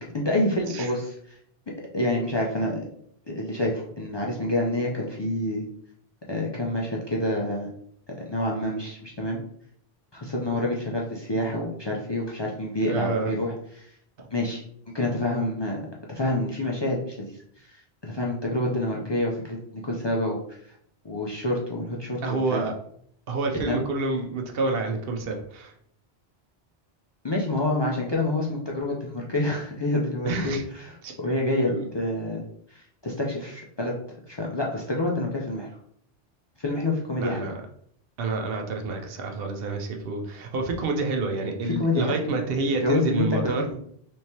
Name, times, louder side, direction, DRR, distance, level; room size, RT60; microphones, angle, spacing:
voice 1, 0.1-1.4 1.7-2.9 3.3-5.7 6.3-7.7 8.1-9.4 10.1-14.0 14.3-14.6 14.9-15.8 16.1-20.6 21.0-22.6 23.5-23.7 27.2-32.4 32.7-33.9 34.2-35.7 36.6-37.5 41.6-42.2 42.8-43.7, left 1 dB, 45° left, -2 dB, 0.3 m, -28 dB
voice 2, 12.9-13.3 14.2-14.3 22.2-22.7 23.3-25.7 30.3-30.6 31.0-31.1 31.6-31.9 37.2-37.5 38.2-43.6, right 3 dB, 65° right, 4 dB, 0.8 m, -28 dB
3.5 x 3.1 x 2.8 m, 0.66 s
omnidirectional pair, 1.1 m